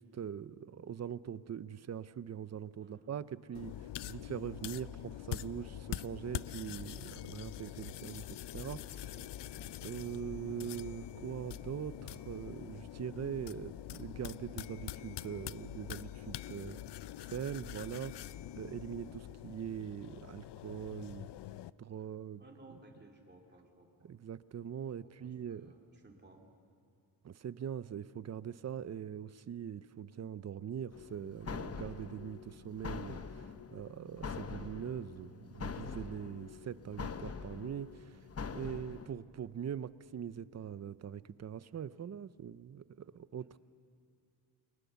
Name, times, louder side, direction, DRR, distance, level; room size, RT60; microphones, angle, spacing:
voice 1, 0.0-3.7 4.1-9.1 9.8-16.8 17.3-21.3 21.8-22.4 24.0-25.7 27.2-38.2 38.5-43.6, right 8 dB, 40° right, 17 dB, 0.5 m, -42 dB
voice 2, 2.8-3.9 9.1-9.7 16.6-17.0 22.0-22.1 22.4-24.1 25.0-26.5, right 2 dB, 25° right, 1 dB, 2.8 m, -60 dB
sound 1, 3.5-21.7, left 12 dB, 85° left, 0.6 m, -45 dB
sound 2, 30.9-39.1, left 5 dB, 35° left, 0.8 m, -44 dB
29.5 x 23.0 x 7.0 m, 2.3 s
wide cardioid pair, 175°, 40 cm